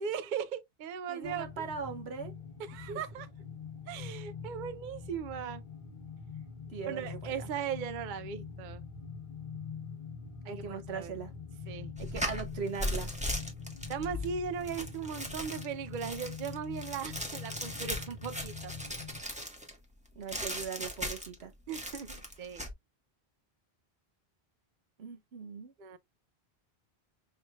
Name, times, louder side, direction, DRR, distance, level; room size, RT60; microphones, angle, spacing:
voice 1, 0.0-1.5 2.7-3.3 3.9-5.6 6.8-8.8 10.5-11.1 11.7-11.9 13.9-18.7 21.7-22.6 25.8-26.0, right 7 dB, 55° right, 0.7 m, -38 dB
voice 2, 1.1-2.3 2.9-3.0 6.7-7.5 10.5-11.3 12.0-13.1 20.1-21.5 25.0-25.7, right 6 dB, 85° right, 1.2 m, -40 dB
sound 1, 1.2-19.2, left 5 dB, 55° left, 1.0 m, -44 dB
sound 2, 12.0-19.8 20.3-21.4 21.7-22.7, equal, 5° right, 1.2 m, -38 dB
5.7 x 3.2 x 2.3 m
omnidirectional pair, 1.1 m